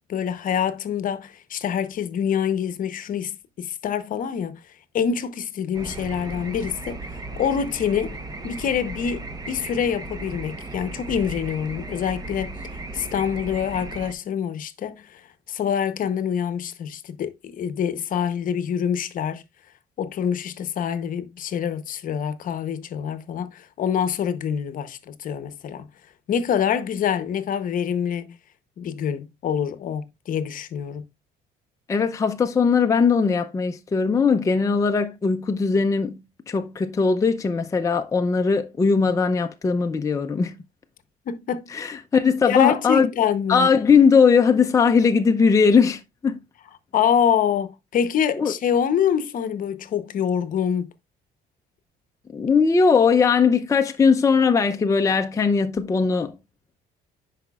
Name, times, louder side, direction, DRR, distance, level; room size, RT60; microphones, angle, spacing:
voice 1, 0.1-4.6 4.9-7.0 7.4-8.2 8.4-12.5 12.9-15.2 15.5-19.4 20.0-25.9 26.3-28.4 28.8-31.0 41.3-41.6 42.5-43.7 46.9-50.9, left 8 dB, 55° left, 0.8 m, -25 dB
sound 1, 5.7-14.1, right 2 dB, 20° right, 0.9 m, -36 dB
voice 2, 31.9-36.2 36.5-40.6 41.7-43.1 43.5-46.4 48.4-48.5 52.3-56.3, left 5 dB, 20° left, 0.5 m, -19 dB
10.0 x 4.9 x 2.3 m
cardioid pair, 110°, 17 cm